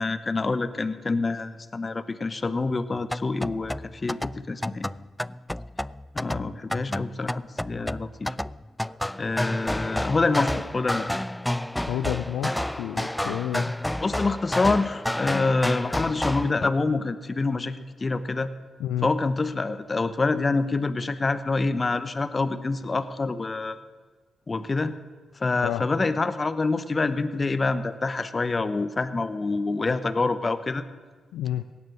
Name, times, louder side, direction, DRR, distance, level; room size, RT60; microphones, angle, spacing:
voice 1, 0.0-4.9 6.1-8.4 9.2-11.1 14.0-18.5 19.0-23.8 24.5-24.9 25.4-30.8, left 3 dB, 35° left, 12 dB, 1.0 m, -26 dB
sound 1, 3.0-16.5, left 1 dB, 10° left, 0.3 m, -30 dB
voice 2, 11.9-13.7 18.8-19.1 25.6-25.8 31.3-31.6, left 12 dB, 90° left, 10 dB, 0.4 m, -30 dB
17.0 x 9.6 x 6.3 m, 1.5 s
supercardioid pair, 50°, 0 cm